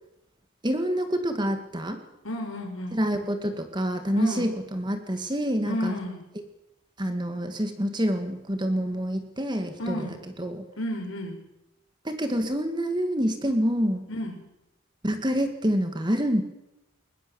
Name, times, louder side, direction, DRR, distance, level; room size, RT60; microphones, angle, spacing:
voice 1, 0.6-2.0 2.9-5.9 7.0-10.6 12.0-14.0 15.0-16.4, equal, 20° right, 7 dB, 2.3 m, -27 dB
voice 2, 2.2-3.0 4.2-4.5 5.7-6.2 9.8-10.2 10.8-11.4 14.1-14.4, left 1 dB, 70° left, 4 dB, 5.3 m, -32 dB
22.5 x 20.5 x 7.3 m, 0.89 s
head